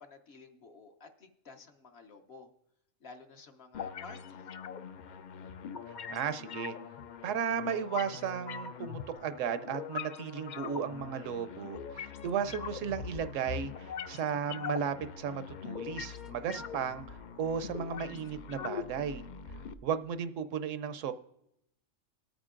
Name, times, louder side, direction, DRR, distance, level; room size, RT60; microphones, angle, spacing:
voice 1, 0.0-2.5 3.0-4.5, left 4 dB, 55° left, 6 dB, 1.0 m, -52 dB
sound 1, 3.7-19.7, left 7 dB, 80° left, 0.4 m, -42 dB
voice 2, 6.1-6.8 7.2-19.2 19.8-21.1, right 7 dB, 75° right, 11 dB, 0.9 m, -35 dB
19.5 x 8.9 x 2.5 m, 0.80 s
omnidirectional pair, 1.4 m